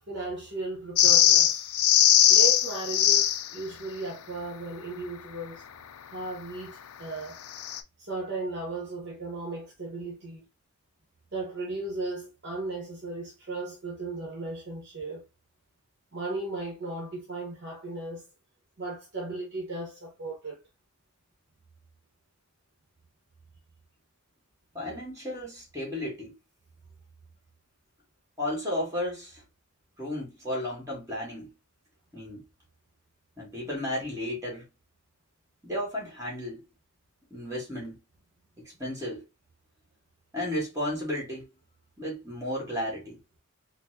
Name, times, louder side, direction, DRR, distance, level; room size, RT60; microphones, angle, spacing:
voice 1, 0.1-1.6 2.3-5.6 6.1-7.4 8.0-10.5 11.3-15.2 16.1-18.2 18.8-20.6, right 2 dB, 50° right, 0.9 m, -36 dB
sound 1, 1.0-3.5 7.5-7.8, left 11 dB, 80° left, 0.4 m, -20 dB
voice 2, 24.7-26.3 28.4-29.4 30.0-31.5 32.1-32.4 33.4-34.7 35.6-36.6 37.3-38.0 38.6-39.2 40.3-41.5 42.0-43.2, left 1 dB, 15° right, 1.5 m, -33 dB
4.1 x 2.0 x 2.7 m
head